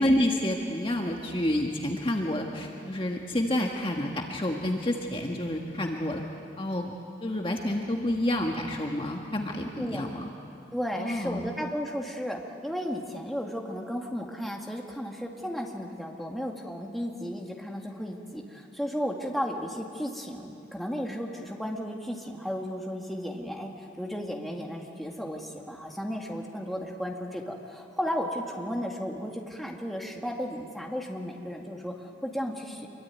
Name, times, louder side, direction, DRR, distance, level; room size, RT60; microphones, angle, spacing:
voice 1, 0.0-6.2 6.6-6.9 7.2-10.3 11.0-11.5, left 1 dB, 30° left, 1 dB, 1.5 m, -29 dB
voice 2, 9.8-10.2 10.7-32.9, equal, ahead, 0 dB, 2.1 m, -34 dB
26.0 x 23.0 x 9.4 m, 2.6 s
head